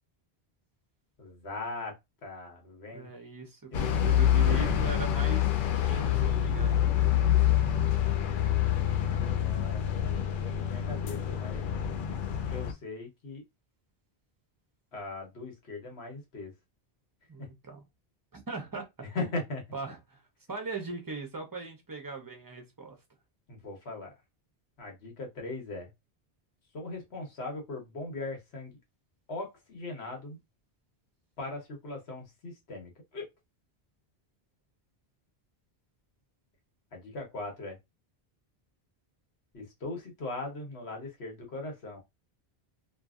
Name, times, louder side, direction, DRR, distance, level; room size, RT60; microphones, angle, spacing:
voice 1, 1.2-1.9 2.2-3.1 3.7-4.3 4.6-5.1 9.1-11.7 12.5-13.4 14.9-16.5 17.4-17.5 19.1-19.6 23.5-24.1 24.8-25.9 26.7-28.8 29.3-30.4 31.4-33.3 36.9-37.8 39.5-42.0, left 2 dB, 80° left, 1.4 m, -39 dB
voice 2, 2.9-5.4 5.9-6.9 17.3-17.8 18.3-18.9 19.7-20.2 20.5-23.0, right 4 dB, 25° right, 0.6 m, -39 dB
sound 1, 3.7-12.7, left 10 dB, 60° left, 0.6 m, -26 dB
2.7 x 2.6 x 2.4 m
omnidirectional pair, 1.1 m